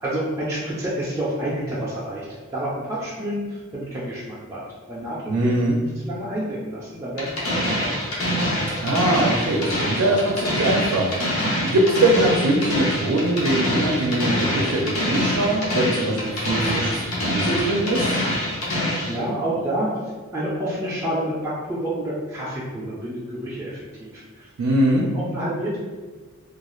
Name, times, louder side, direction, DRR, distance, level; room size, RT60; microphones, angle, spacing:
voice 1, 0.0-4.6 4.9-5.6 6.0-8.0 19.1-19.9 20.3-24.5 24.9-25.8, right 1 dB, 15° right, -8 dB, 0.4 m, -29 dB
voice 2, 5.3-5.8 8.8-11.1 11.6-18.2 24.6-25.0, right 1 dB, 85° right, -2 dB, 0.4 m, -22 dB
sound 1, 7.2-19.2, equal, 80° left, 0.7 m, -25 dB
2.3 x 2.3 x 3.0 m, 1.4 s
head